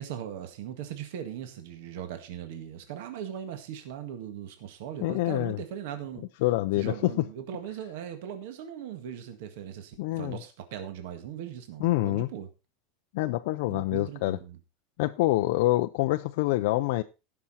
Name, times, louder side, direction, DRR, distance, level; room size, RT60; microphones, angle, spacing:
voice 1, 0.0-6.3 6.8-12.5 13.7-14.6, right 9 dB, 60° right, 1.8 m, -39 dB
voice 2, 5.0-5.6 6.4-7.3 10.0-10.4 11.8-12.3 13.1-14.4 15.0-17.0, left 17 dB, 55° left, 0.5 m, -26 dB
17.0 x 6.0 x 4.2 m
supercardioid pair, 175°, 0 cm